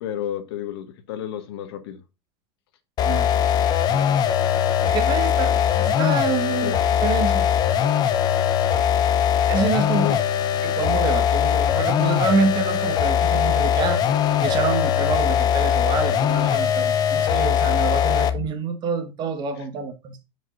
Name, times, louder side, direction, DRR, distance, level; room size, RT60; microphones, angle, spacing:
voice 1, 0.0-2.0 6.6-6.7 9.9-10.2, left 11 dB, 85° left, 1.5 m, -31 dB
sound 1, 3.0-18.5, left 9 dB, 30° left, 0.6 m, -21 dB
voice 2, 4.8-7.6 9.5-10.2 10.6-14.1 14.4-20.2, right 5 dB, 35° right, 1.3 m, -27 dB
9.7 x 5.4 x 2.5 m
supercardioid pair, 145°, 13 cm